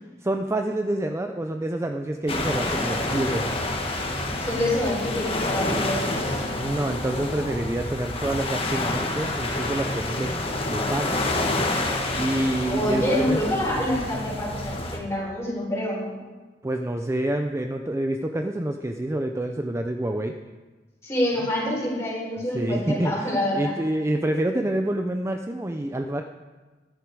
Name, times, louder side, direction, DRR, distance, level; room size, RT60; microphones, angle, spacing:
voice 1, 0.2-3.5 6.6-10.3 10.7-11.2 12.1-13.4 16.6-20.3 22.5-26.2, right 1 dB, 15° right, 5 dB, 0.4 m, -27 dB
sound 1, 2.3-15.0, left 2 dB, 35° left, 1.4 m, -28 dB
voice 2, 4.4-6.4 12.7-16.1 21.0-23.7, left 1 dB, 15° left, -6 dB, 4.7 m, -27 dB
13.0 x 10.0 x 4.7 m, 1.3 s
head